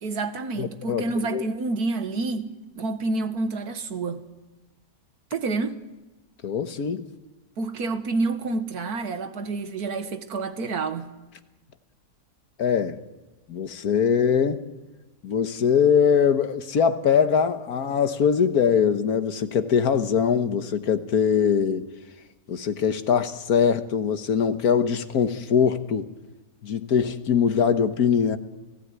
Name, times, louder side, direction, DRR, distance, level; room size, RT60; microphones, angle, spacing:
voice 1, 0.0-2.5 2.7-4.2 5.3-5.8 7.6-11.1, right 3 dB, 85° right, 2.0 m, -28 dB
voice 2, 0.6-1.0 1.3-1.4 6.4-7.0 12.6-13.0 13.5-14.6 15.2-21.9 22.5-26.1 26.6-28.4, left 7 dB, 80° left, 1.7 m, -22 dB
29.0 x 16.5 x 9.7 m
omnidirectional pair, 1.6 m